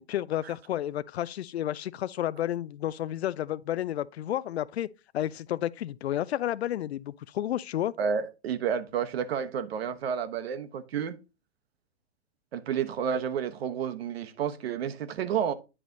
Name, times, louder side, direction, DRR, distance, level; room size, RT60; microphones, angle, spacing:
voice 1, 0.0-4.9 5.1-7.9, left 12 dB, 70° left, 0.5 m, -31 dB
voice 2, 8.0-11.2 12.5-15.5, right 7 dB, 65° right, 1.1 m, -30 dB
10.0 x 3.3 x 3.9 m
hypercardioid pair, 110°, 33 cm